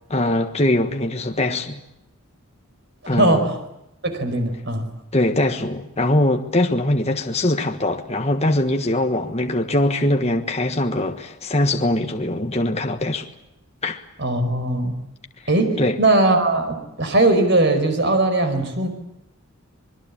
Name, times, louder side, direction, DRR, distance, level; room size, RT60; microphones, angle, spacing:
voice 1, 0.1-1.8 3.1-3.5 5.1-13.3 13.8-14.0 15.8-16.0, left 1 dB, 30° left, 1.4 m, -22 dB
voice 2, 3.1-3.5 4.0-4.8 14.2-14.9 15.5-18.9, right 2 dB, 50° right, 5.2 m, -19 dB
26.0 x 22.0 x 8.6 m
head